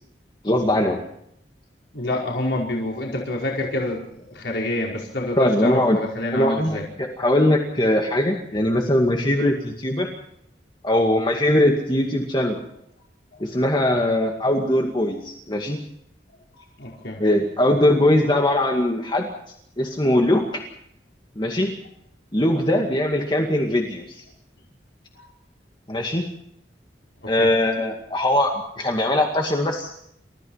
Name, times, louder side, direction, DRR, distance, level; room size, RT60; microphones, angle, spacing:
voice 1, 0.4-1.0 5.4-6.0 6.3-10.1 10.8-12.6 13.4-15.8 17.2-19.3 19.8-20.4 21.4-21.7 22.3-24.2 25.9-26.2 27.3-29.9, left 1 dB, 25° left, 1 dB, 2.2 m, -21 dB
voice 2, 1.9-6.8 13.9-14.1 16.8-17.3 25.1-25.2 27.2-27.5, left 2 dB, 85° left, -2 dB, 5.2 m, -27 dB
30.0 x 15.0 x 5.7 m, 0.73 s
head